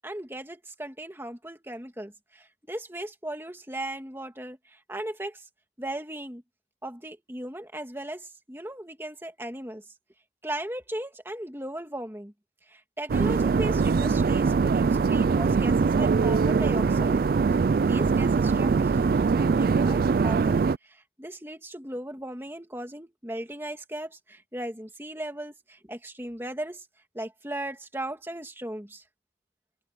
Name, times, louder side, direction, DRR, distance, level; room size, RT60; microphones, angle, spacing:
voice 1, 0.0-5.5 5.8-6.4 6.8-9.8 10.4-12.3 12.6-17.2 17.9-26.9 27.1-29.0, right 1 dB, 10° right, 2.3 m, -37 dB
sound 1, 13.1-20.8, right 5 dB, 50° right, 0.3 m, -22 dB
head